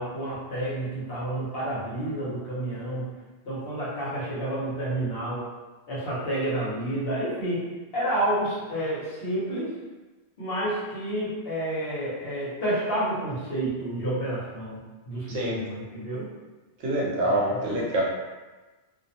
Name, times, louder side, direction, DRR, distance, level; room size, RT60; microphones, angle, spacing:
voice 1, 0.0-3.1 3.4-5.4 5.9-7.6 7.9-9.7 10.4-14.8 15.1-16.3 17.2-17.6, right 1 dB, 60° left, -7 dB, 1.0 m, -30 dB
voice 2, 15.3-15.6 16.8-18.0, right 1 dB, 75° right, -5 dB, 1.0 m, -26 dB
2.5 x 2.0 x 2.7 m, 1.2 s
omnidirectional pair, 1.2 m